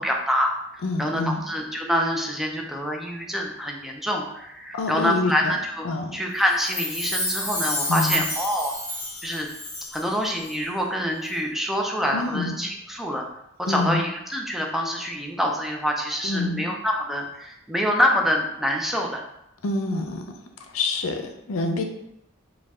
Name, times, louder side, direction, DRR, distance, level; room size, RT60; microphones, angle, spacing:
voice 1, 0.0-5.9 6.1-8.7 9.2-9.5 9.9-13.2 13.6-19.2, equal, ahead, 0 dB, 0.5 m, -26 dB
voice 2, 0.8-1.4 4.7-5.5 5.8-6.2 7.9-8.2 12.1-12.6 13.7-14.0 16.2-16.7 19.6-20.2 20.7-21.8, left 3 dB, 85° left, 5 dB, 0.5 m, -26 dB
Chime, 6.5-10.1 10.4-10.5, equal, 15° left, 1.2 m, -30 dB
4.3 x 2.4 x 3.5 m, 0.81 s
head